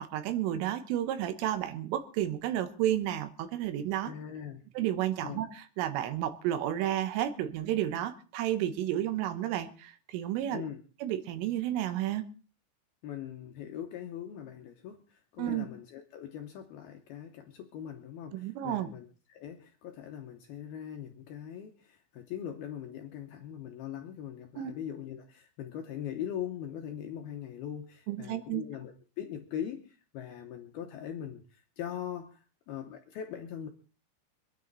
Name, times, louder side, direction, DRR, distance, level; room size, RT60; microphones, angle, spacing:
voice 1, 0.0-4.1 4.8-10.6 11.0-12.2 15.4-15.7 18.3-18.9 24.6-24.7 28.1-28.6, right 12 dB, 80° right, 10 dB, 3.7 m, -31 dB
voice 2, 4.1-4.6 5.2-5.4 10.5-10.8 13.0-33.7, left 9 dB, 80° left, 5 dB, 2.2 m, -41 dB
25.0 x 10.0 x 4.0 m, 0.35 s
omnidirectional pair, 5.9 m